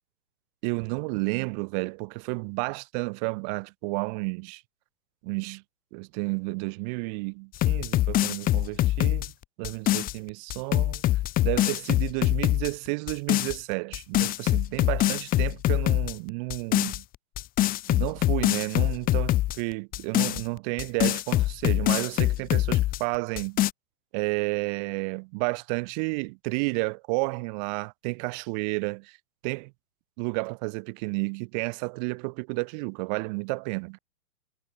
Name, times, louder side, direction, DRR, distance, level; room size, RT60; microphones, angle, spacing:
voice 1, 0.6-4.6 5.2-5.6 5.9-9.3 9.6-11.0 11.4-17.0 17.9-23.6 24.1-29.1 29.4-29.7 30.2-34.0, right 33 dB, 30° right, 1.0 m, -31 dB
sound 1, 7.5-10.1 10.5-12.7 13.1-13.6 13.9-16.1 16.5-17.0 17.4-19.6 19.9-23.0 23.4-23.7, left 15 dB, 20° left, 1.1 m, -24 dB
figure-of-eight pair, 120°, 47 cm